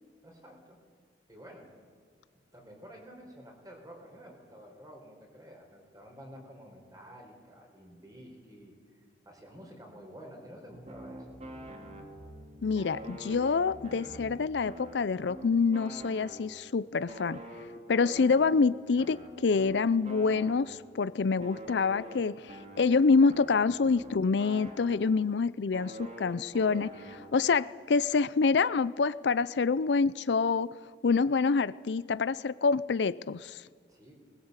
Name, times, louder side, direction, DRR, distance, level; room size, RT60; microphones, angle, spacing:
voice 1, 0.2-0.8 1.3-1.7 2.3-8.7 9.2-11.4 33.9-34.1, equal, 20° right, 4.4 m, -50 dB
sound 1, 10.6-14.7, left 1 dB, 55° right, 7.2 m, -51 dB
sound 2, 10.9-12.4 12.7-16.7 17.1-21.0 21.4-25.3 25.7-27.6, right 1 dB, 35° right, 2.3 m, -46 dB
voice 2, 12.6-17.4 17.9-30.8 31.0-33.6, left 4 dB, 80° left, 0.5 m, -27 dB
21.0 x 20.0 x 8.1 m
head